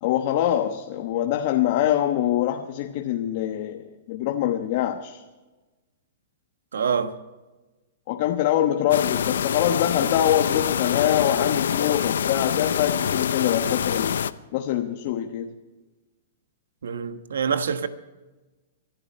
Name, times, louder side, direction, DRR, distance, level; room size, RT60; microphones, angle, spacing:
voice 1, 0.0-5.2 8.1-14.2 14.5-15.5, left 11 dB, 50° left, 1.2 m, -24 dB
voice 2, 6.7-7.1 16.8-17.9, right 6 dB, 90° right, 1.2 m, -25 dB
sound 1, 8.9-14.3, left 8 dB, 80° left, 0.6 m, -25 dB
24.0 x 12.0 x 4.4 m
hypercardioid pair, 135°, 0 cm